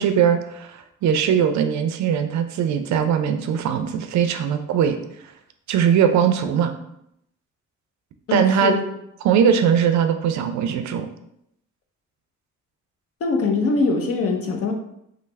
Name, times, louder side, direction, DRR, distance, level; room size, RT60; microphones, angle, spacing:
voice 1, 0.0-5.0 5.7-6.8 8.3-8.8 9.2-11.1, right 8 dB, 65° right, 8 dB, 0.4 m, -20 dB
voice 2, 8.3-8.8 13.2-14.7, left 3 dB, 50° left, 3 dB, 0.6 m, -22 dB
3.1 x 2.0 x 3.3 m, 0.76 s
cardioid pair, 90°, 30 cm